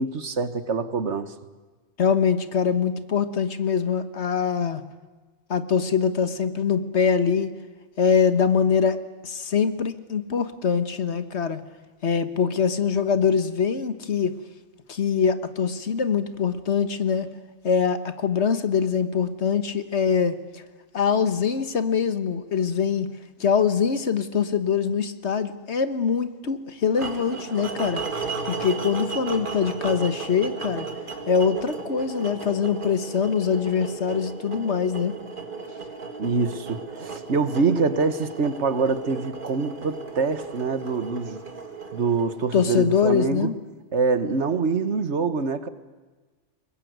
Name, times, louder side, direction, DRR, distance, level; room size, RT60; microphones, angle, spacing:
voice 1, 0.0-1.3 36.2-41.4 41.9-43.5 43.9-45.7, right 4 dB, 65° right, 12 dB, 1.6 m, -25 dB
voice 2, 2.0-4.8 5.5-7.5 8.0-11.6 12.0-14.4 14.9-17.3 17.6-20.6 20.9-23.1 23.4-28.0 28.5-30.9 31.3-35.2 42.5-43.5, left 6 dB, 65° left, 11 dB, 1.6 m, -23 dB
sound 1, 27.0-43.1, right 4 dB, 45° right, 2.1 m, -35 dB
22.5 x 20.5 x 9.4 m, 1.3 s
omnidirectional pair, 1.2 m